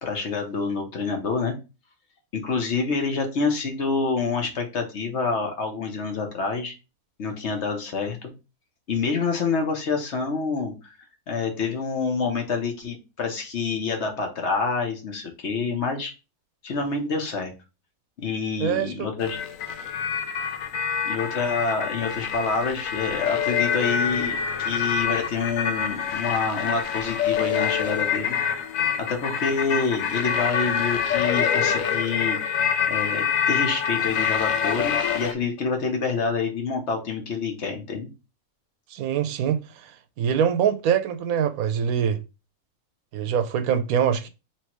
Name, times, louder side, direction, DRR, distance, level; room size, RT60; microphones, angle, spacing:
voice 1, 0.0-1.5 2.3-6.7 7.2-8.3 8.9-10.7 11.3-16.1 16.6-17.5 18.2-19.4 21.0-28.4 29.0-32.4 32.9-38.1, left 4 dB, 55° left, 1.2 m, -27 dB
voice 2, 18.6-19.1 38.9-42.2 43.1-44.3, right 8 dB, 90° right, 1.1 m, -24 dB
sound 1, 19.2-35.3, left 7 dB, 75° left, 1.0 m, -26 dB
3.3 x 3.0 x 4.4 m
omnidirectional pair, 1.4 m